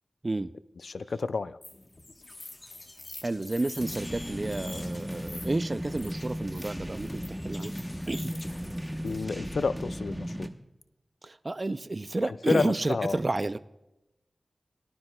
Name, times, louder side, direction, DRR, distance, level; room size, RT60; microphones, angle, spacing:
voice 1, 0.8-1.6 9.0-10.5 12.3-13.2, left 4 dB, 80° left, 15 dB, 0.3 m, -30 dB
sound 1, 1.6-9.2, left 2 dB, 40° left, 1.1 m, -46 dB
voice 2, 3.2-7.7 8.1-8.3 11.2-13.6, right 2 dB, 40° right, 13 dB, 0.3 m, -31 dB
sound 2, 3.8-10.5, equal, ahead, 0.9 m, -36 dB
18.0 x 11.5 x 2.2 m, 0.95 s
wide cardioid pair, 70°, 0 cm